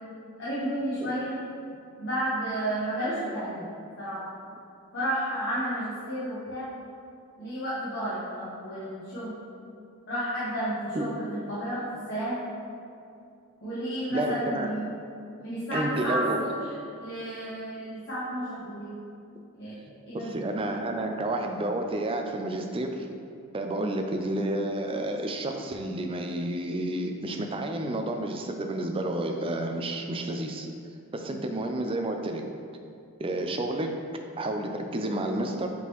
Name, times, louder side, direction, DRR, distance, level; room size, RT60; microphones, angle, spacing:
voice 1, 0.4-1.4 2.0-3.7 4.0-4.3 4.9-6.7 7.4-9.3 10.1-12.4 13.6-14.9 15.4-16.5 17.0-18.9 19.6-19.7 20.1-20.5 21.0-21.1 23.7-23.9 31.3-31.5, right 1 dB, 55° left, -11 dB, 1.2 m, -32 dB
voice 2, 14.1-14.7 15.7-16.5 20.1-23.1 23.5-30.7 31.1-32.4 33.2-33.9 34.4-35.7, right 1 dB, 25° right, 4 dB, 0.4 m, -30 dB
8.2 x 3.8 x 3.0 m, 2.5 s
head